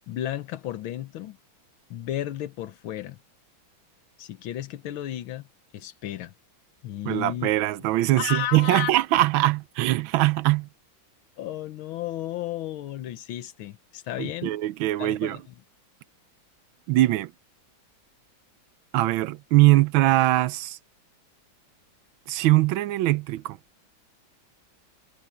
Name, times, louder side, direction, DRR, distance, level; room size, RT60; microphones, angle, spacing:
voice 1, 0.1-1.4 1.9-3.2 4.2-5.5 5.7-6.3 6.8-7.5 8.2-8.9 11.4-14.6 15.0-15.6, left 12 dB, 90° left, 1.7 m, -33 dB
voice 2, 7.0-10.7 14.2-15.4 16.9-17.3 18.9-20.8 22.3-23.6, right 17 dB, 85° right, 1.4 m, -22 dB
omnidirectional pair, 2.2 m